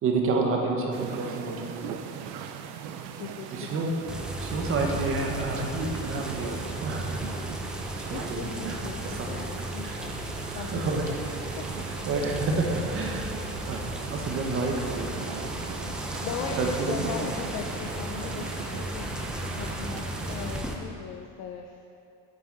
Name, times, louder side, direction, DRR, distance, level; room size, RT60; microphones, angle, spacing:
voice 1, 0.0-2.0 2.8-2.9 3.5-3.9 4.4-7.6 8.1-8.8 9.2-9.3 9.8-10.0 10.5-11.0 12.1-13.3 13.7-13.8 14.1-15.4 16.6-17.1, right 3 dB, 45° right, 1 dB, 1.3 m, -29 dB
sound 1, 0.9-20.6, right 8 dB, 90° right, 0.7 m, -39 dB
voice 2, 3.2-4.0 8.1-10.1 10.4-11.2 11.5-11.8 13.2-13.3 16.2-19.2 19.6-21.8, left 7 dB, 55° left, 3 dB, 0.6 m, -39 dB
sound 2, 4.1-20.7, equal, 5° right, 0.6 m, -35 dB
8.1 x 8.0 x 4.0 m, 2.5 s
cardioid pair, 140°, 31 cm